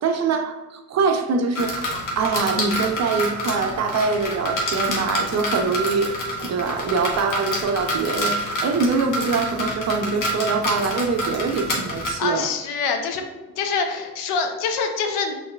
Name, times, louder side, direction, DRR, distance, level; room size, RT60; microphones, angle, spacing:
voice 1, 0.0-12.5, right 4 dB, 45° right, 6 dB, 0.6 m, -24 dB
sound 1, 1.5-12.1, equal, 55° left, 1.3 m, -27 dB
voice 2, 12.2-13.2 13.6-15.4, left 5 dB, 80° left, 5 dB, 0.8 m, -25 dB
6.2 x 3.3 x 2.3 m, 1.2 s
supercardioid pair, 75°, 38 cm